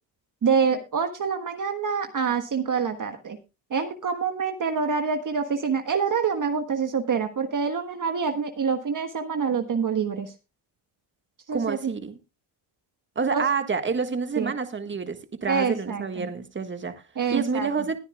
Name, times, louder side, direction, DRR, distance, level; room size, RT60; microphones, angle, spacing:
voice 1, 0.4-3.4 3.7-10.3 11.5-11.9 13.3-13.4 14.4-14.5 15.5-16.3 17.2-17.7, right 6 dB, 40° right, 1.4 m, -26 dB
voice 2, 11.5-12.2 13.1-17.0 17.3-18.0, right 5 dB, 20° right, 1.6 m, -28 dB
21.0 x 9.7 x 2.3 m
cardioid pair, 85°, 50 cm